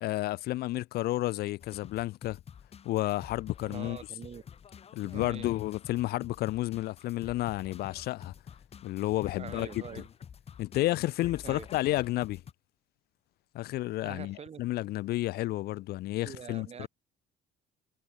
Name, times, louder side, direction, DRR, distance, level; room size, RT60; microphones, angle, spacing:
voice 1, 0.0-2.4 2.8-4.0 4.9-8.3 8.8-9.8 10.6-12.4 13.5-16.9, left 16 dB, 70° left, 0.5 m, -31 dB
sound 1, 1.6-12.5, left 7 dB, 35° left, 1.0 m, -49 dB
voice 2, 3.7-4.4 5.0-5.6 9.3-10.1 11.4-11.7 14.0-14.6 16.2-16.9, right 7 dB, 40° right, 1.8 m, -44 dB
cardioid pair, 110°, 17 cm